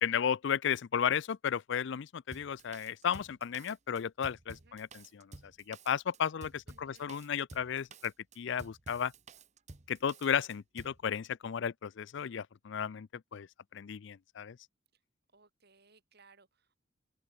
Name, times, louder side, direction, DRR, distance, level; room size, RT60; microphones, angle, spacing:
voice 1, 0.0-5.3 5.7-9.1 9.9-13.5 13.7-14.6, left 8 dB, 65° left, 0.4 m, -34 dB
Drum kit, 2.3-11.0, right 3 dB, 35° right, 1.2 m, -52 dB
voice 2, 4.5-4.8 6.7-7.1 15.3-16.8, right 4 dB, 55° right, 6.5 m, -64 dB
open air
head